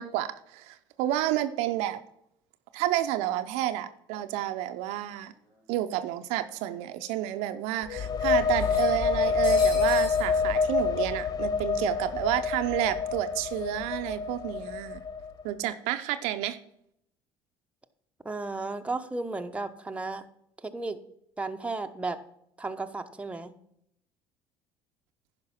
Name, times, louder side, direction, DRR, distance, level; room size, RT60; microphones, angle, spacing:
voice 1, 0.0-2.0 2.7-5.3 5.7-15.0 15.4-16.6, right 13 dB, 75° right, 9 dB, 0.6 m, -30 dB
sound 1, 5.2-5.3 5.6-5.7 6.7-6.8 7.2-7.3 8.6-10.3, left 2 dB, 85° left, 3.3 m, -43 dB
sound 2, 7.8-15.4, left 5 dB, 35° left, 0.6 m, -27 dB
voice 2, 18.2-20.2 20.6-21.0 21.4-22.2 22.6-23.5, right 3 dB, 10° right, 6 dB, 0.9 m, -34 dB
10.5 x 5.3 x 5.7 m, 0.73 s
hypercardioid pair, 70°, 11 cm